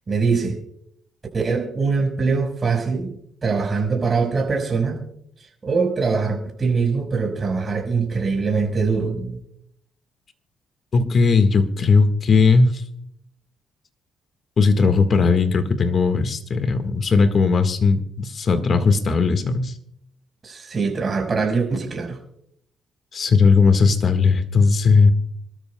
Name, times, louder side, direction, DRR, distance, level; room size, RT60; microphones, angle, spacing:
voice 1, 0.1-0.6 1.3-3.1 3.4-5.0 5.6-9.4 20.4-22.2, right 4 dB, 35° right, 2 dB, 4.9 m, -22 dB
voice 2, 10.9-12.8 14.6-19.7 23.1-25.1, left 4 dB, 50° left, 8 dB, 1.6 m, -17 dB
25.5 x 13.0 x 2.3 m, 0.72 s
cardioid pair, 90°, 0 cm